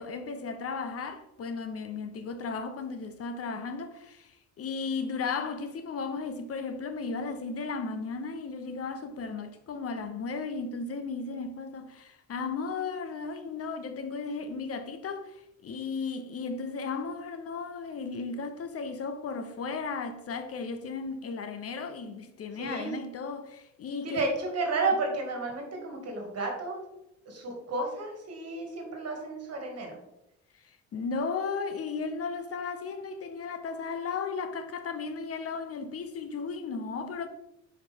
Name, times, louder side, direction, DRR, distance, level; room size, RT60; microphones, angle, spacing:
voice 1, 0.0-24.3 30.5-37.3, left 4 dB, 50° left, 0.7 m, -35 dB
voice 2, 22.6-22.9 24.0-26.8 27.3-30.0, right 3 dB, 55° right, 1.9 m, -32 dB
6.0 x 4.9 x 3.5 m
cardioid pair, 90°, 30 cm